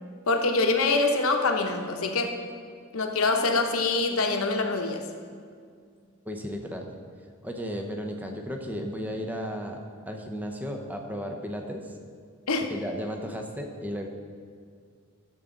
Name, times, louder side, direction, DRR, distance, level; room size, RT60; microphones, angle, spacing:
voice 1, 0.3-2.4 2.9-5.1 12.5-12.7, left 3 dB, 70° left, 4 dB, 0.9 m, -25 dB
voice 2, 6.3-6.9 7.4-12.0 12.7-14.1, equal, 5° right, 3 dB, 0.7 m, -34 dB
12.5 x 7.2 x 3.8 m, 2.1 s
head